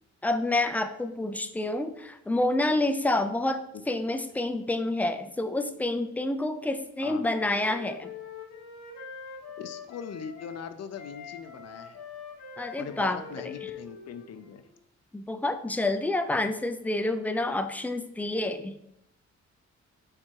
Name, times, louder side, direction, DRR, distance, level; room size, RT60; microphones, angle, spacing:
voice 1, 0.2-8.1 12.6-13.2 15.1-18.7, left 2 dB, 5° left, 8 dB, 0.4 m, -28 dB
Wind instrument woodwind instrument, 7.5-10.6 10.9-14.7, left 6 dB, 85° left, 1.3 m, -44 dB
voice 2, 9.6-12.0 12.7-14.7, left 7 dB, 60° left, 10 dB, 0.6 m, -41 dB
4.8 x 4.5 x 4.5 m, 0.79 s
cardioid pair, 120°, 29 cm